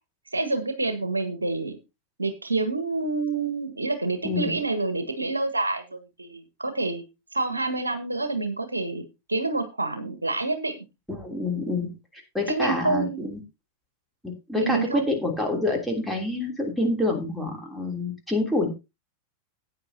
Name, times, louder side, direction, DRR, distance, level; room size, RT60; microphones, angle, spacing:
voice 1, 0.3-1.8 2.2-7.0 7.3-10.8 12.5-13.2 14.5-15.1, right 3 dB, 80° right, 10 dB, 1.5 m, -28 dB
voice 2, 4.2-4.6 11.1-13.4 14.2-18.7, left 2 dB, ahead, 0 dB, 3.2 m, -27 dB
15.0 x 9.2 x 2.8 m, 0.26 s
figure-of-eight pair, 90°, 0 cm